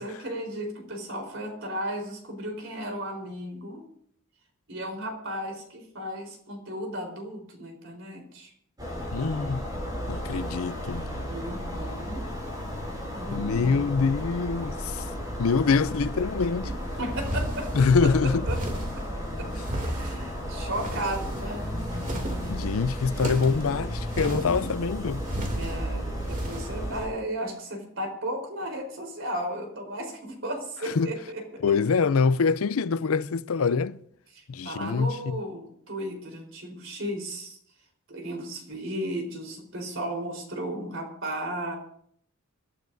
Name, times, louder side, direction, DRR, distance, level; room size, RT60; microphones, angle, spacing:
voice 1, 0.0-3.9 4.7-8.5 11.3-12.3 13.1-13.8 16.7-17.7 18.0-18.1 18.4-18.6 19.0-21.8 24.6-24.8 25.5-31.7 34.3-37.6 38.1-41.7, right 1 dB, 65° right, 4.1 m, -35 dB
sound 1, 8.8-27.0, equal, 20° right, 7.1 m, -33 dB
voice 2, 9.1-9.6 10.1-11.1 13.3-15.1 15.4-16.7 17.8-18.5 22.5-25.2 31.0-31.1 31.6-34.0 34.5-35.4, left 5 dB, 85° left, 0.5 m, -25 dB
sound 2, 17.1-18.0 18.4-19.0 19.6-20.2 20.7-21.5 21.9-22.6 23.1-23.7 24.1-24.7 25.3-25.7 26.2-26.7, equal, 40° right, 2.8 m, -33 dB
27.5 x 11.5 x 2.7 m
head